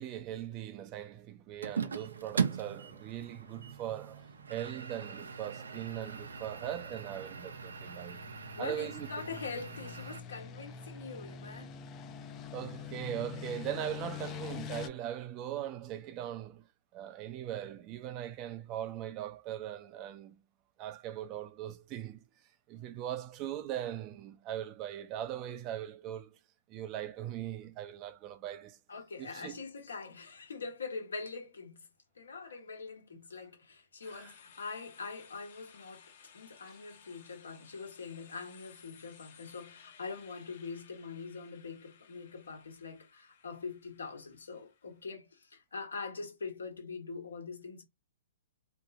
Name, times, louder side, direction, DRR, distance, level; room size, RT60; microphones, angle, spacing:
voice 1, 0.0-8.3 8.6-9.1 12.5-16.7 16.9-20.4 20.8-22.2 22.7-26.4 26.7-28.8 29.2-29.6 34.1-34.3, right 11 dB, 30° right, 0.5 m, -40 dB
sound 1, 1.6-10.2, right 6 dB, 80° right, 0.5 m, -40 dB
sound 2, 2.0-14.9, left 10 dB, 25° left, 0.4 m, -47 dB
voice 2, 8.6-11.8 28.9-31.9 32.1-47.8, left 4 dB, 80° left, 1.2 m, -43 dB
sound 3, 34.0-45.0, left 7 dB, 55° left, 0.9 m, -59 dB
2.8 x 2.8 x 2.4 m
hypercardioid pair, 130°, 0 cm